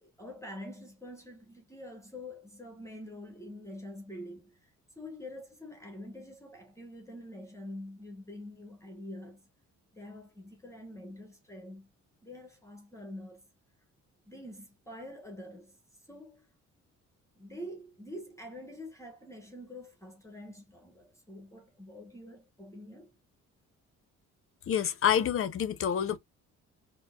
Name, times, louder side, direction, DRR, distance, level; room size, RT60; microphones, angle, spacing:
voice 1, 0.0-4.7 5.0-9.5 9.9-11.9 12.2-13.5 14.2-15.8 16.1-16.5 17.3-23.1, left 1 dB, 10° left, 0.9 m, -46 dB
voice 2, 24.7-26.2, left 9 dB, 45° left, 0.6 m, -27 dB
4.5 x 2.1 x 2.3 m
cardioid pair, 90°, 30 cm